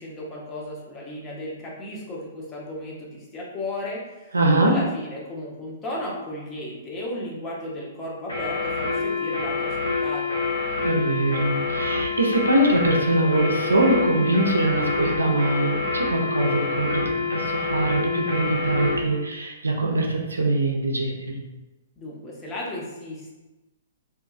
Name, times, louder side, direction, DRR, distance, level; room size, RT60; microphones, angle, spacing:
voice 1, 0.0-4.3 4.7-10.5 22.0-23.4, left 1 dB, 20° left, -4 dB, 0.7 m, -35 dB
voice 2, 4.3-4.8 10.8-21.4, right 2 dB, 80° right, 1 dB, 0.4 m, -23 dB
sound 1, 8.3-19.0, left 4 dB, 75° left, 1.0 m, -26 dB
2.8 x 2.2 x 2.4 m, 1.1 s
figure-of-eight pair, 115°, 0 cm